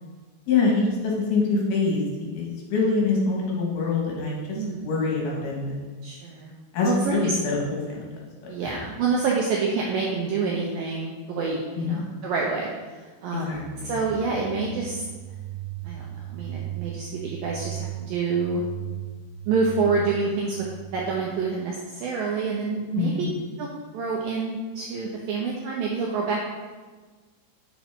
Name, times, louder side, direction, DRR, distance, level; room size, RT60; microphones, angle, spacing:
voice 1, 0.5-2.0 2.3-6.0 6.7-8.0 8.4-8.8 11.7-12.0 13.5-14.0 23.0-23.3, left 4 dB, 70° left, -3 dB, 3.1 m, -25 dB
voice 2, 4.6-4.9 6.0-6.5 6.8-7.4 8.5-12.7 13.2-13.6 13.8-15.0 15.8-18.6 19.5-20.6 20.9-23.3 23.6-23.7 23.9-26.4, right 4 dB, 80° right, -2 dB, 2.0 m, -27 dB
sound 1, 13.5-21.3, right 13 dB, 60° right, 2.4 m, -37 dB
7.3 x 6.1 x 3.5 m, 1.4 s
omnidirectional pair, 4.8 m